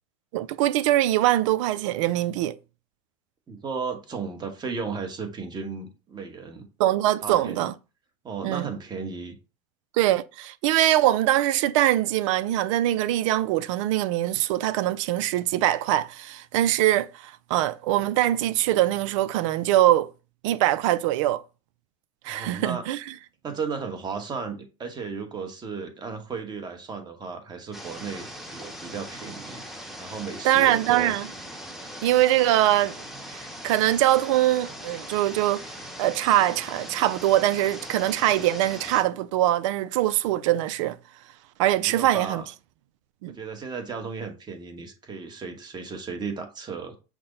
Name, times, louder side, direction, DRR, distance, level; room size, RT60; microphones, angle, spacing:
voice 1, 0.3-2.6 6.8-7.7 8.4-8.7 9.9-20.1 20.4-21.4 22.2-23.1 30.4-31.3 32.0-32.9 33.3-35.6 36.0-41.0 41.6-42.4 43.2-43.3, right 14 dB, 70° right, 0.4 m, -23 dB
voice 2, 3.5-6.7 7.2-7.6 8.2-9.4 22.3-22.9 23.4-29.6 30.0-31.1 41.8-42.5 43.3-47.0, right 5 dB, 25° right, 1.1 m, -35 dB
sound 1, 27.7-39.0, equal, ahead, 0.9 m, -40 dB
5.9 x 2.2 x 3.8 m
supercardioid pair, 100°, 16 cm